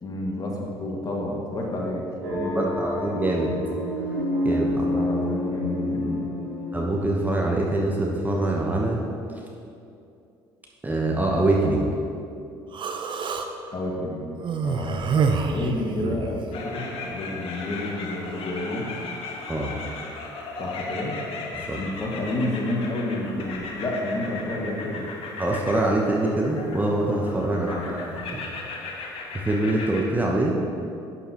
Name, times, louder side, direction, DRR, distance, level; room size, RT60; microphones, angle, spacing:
voice 1, 0.0-2.8 4.9-6.3 13.7-14.3 14.6-18.9 20.6-21.2 21.8-25.1 27.5-27.9, left 1 dB, 30° left, -2 dB, 2.2 m, -30 dB
sound 1, 2.2-7.6, left 1 dB, 85° right, 2.0 m, -28 dB
voice 2, 2.5-3.5 4.4-4.9 6.7-9.0 10.8-11.9 19.5-19.7 21.7-21.8 25.4-28.4 29.4-30.7, right 2 dB, 15° right, -2 dB, 1.2 m, -24 dB
Human voice, 12.7-13.5 14.4-16.4, right 5 dB, 40° right, 0.8 m, -26 dB
sound 2, 16.5-30.0, left 3 dB, 50° left, 1.4 m, -37 dB
12.0 x 9.3 x 3.1 m, 2.6 s
figure-of-eight pair, 55°, 13 cm